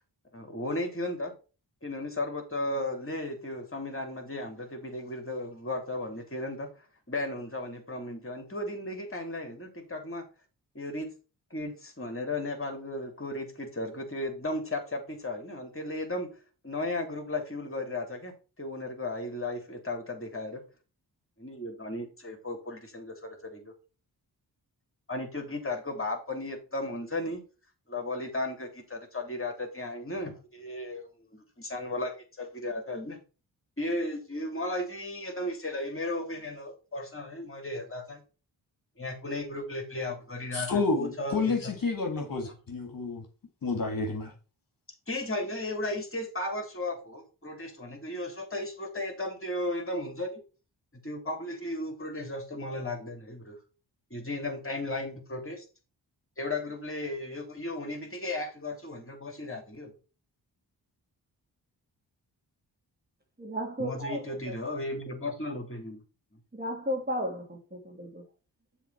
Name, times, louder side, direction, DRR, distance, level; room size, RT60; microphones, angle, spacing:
voice 1, 0.3-1.3 1.8-6.7 7.1-10.3 10.7-11.1 11.5-16.3 16.6-20.6 21.4-23.7 25.1-27.4 27.9-33.2 33.8-38.2 39.0-41.7 42.4-42.5 45.1-50.4 50.9-53.6 54.1-55.6 56.4-59.9 63.8-66.0, left 2 dB, 30° left, 3.0 m, -35 dB
voice 2, 40.5-43.2 43.6-44.3, left 3 dB, 50° left, 1.9 m, -30 dB
voice 3, 63.4-64.2 66.6-67.6 68.0-68.2, equal, 20° right, 2.4 m, -33 dB
7.2 x 3.8 x 5.7 m
supercardioid pair, 40°, 45 cm